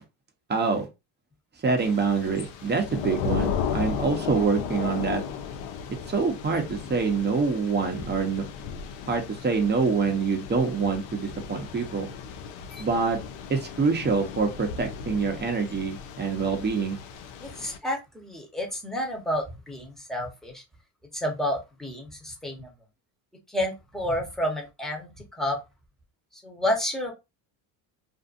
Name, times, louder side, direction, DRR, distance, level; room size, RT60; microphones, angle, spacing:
voice 1, 0.5-0.9 1.6-5.2 6.1-8.5 9.1-12.1 12.8-13.2 13.5-17.0, right 4 dB, 20° right, 0.8 m, -26 dB
Thunder / Rain, 1.8-17.8, left 7 dB, 80° left, 0.7 m, -35 dB
voice 2, 17.4-20.6 21.1-22.7 23.5-25.1 25.4-25.6 26.3-27.1, left 1 dB, ahead, 1.0 m, -30 dB
2.6 x 2.4 x 2.5 m
supercardioid pair, 95°, 47 cm